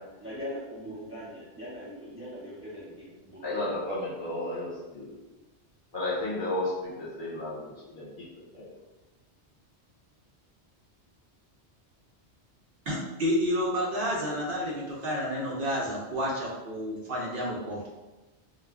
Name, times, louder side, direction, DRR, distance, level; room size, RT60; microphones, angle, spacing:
voice 1, 0.2-3.7, equal, 20° right, -8 dB, 0.4 m, -41 dB
voice 2, 3.4-5.1 5.9-8.7, left 1 dB, 50° left, -8 dB, 1.0 m, -33 dB
voice 3, 12.9-17.9, equal, 60° right, -3 dB, 0.6 m, -30 dB
2.3 x 2.1 x 3.4 m, 1.1 s
omnidirectional pair, 1.1 m